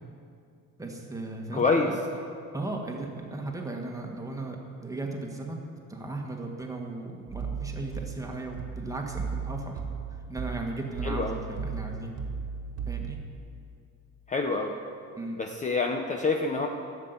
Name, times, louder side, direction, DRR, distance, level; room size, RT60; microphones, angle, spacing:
voice 1, 0.8-1.9 2.5-5.6 5.9-9.8 10.3-12.1 12.9-13.2 15.2-15.4, right 2 dB, 10° right, 1 dB, 1.6 m, -36 dB
voice 2, 1.5-1.9 11.0-11.4 14.3-14.7 15.4-16.7, left 3 dB, 20° left, 3 dB, 0.8 m, -26 dB
sound 1, 7.3-13.4, right 5 dB, 60° right, 1.7 m, -36 dB
12.0 x 7.6 x 8.1 m, 2.4 s
cardioid pair, 120°, 33 cm